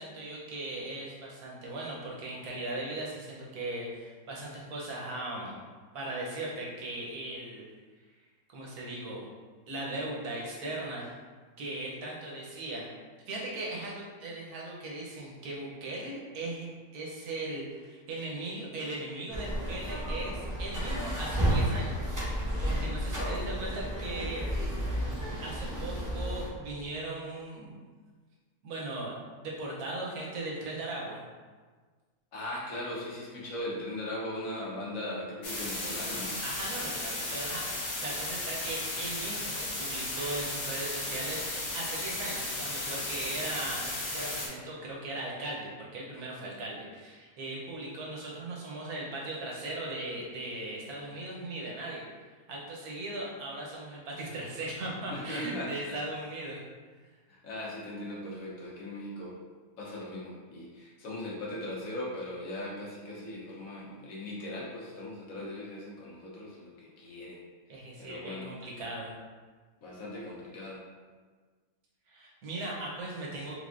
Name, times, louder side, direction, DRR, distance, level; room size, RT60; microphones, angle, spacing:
voice 1, 0.0-5.6 5.9-7.7 8.5-9.3 9.7-11.1 11.6-12.9 13.3-16.7 16.9-22.3 22.6-24.9 25.4-27.7 28.6-29.1 29.4-31.2 36.4-41.4 41.7-52.0 52.5-56.6 67.7-69.1 72.1-73.5, right 2 dB, 90° right, -3 dB, 1.3 m, -38 dB
sound 1, 19.3-26.5, equal, 20° right, 0.5 m, -32 dB
voice 2, 32.3-36.4 55.1-55.7 57.3-59.3 59.8-67.4 68.0-68.5 69.8-70.8, left 1 dB, 70° left, -5 dB, 1.3 m, -39 dB
sound 2, 35.4-44.5, left 2 dB, 45° left, 0.6 m, -35 dB
3.4 x 3.4 x 2.5 m, 1.4 s
omnidirectional pair, 1.5 m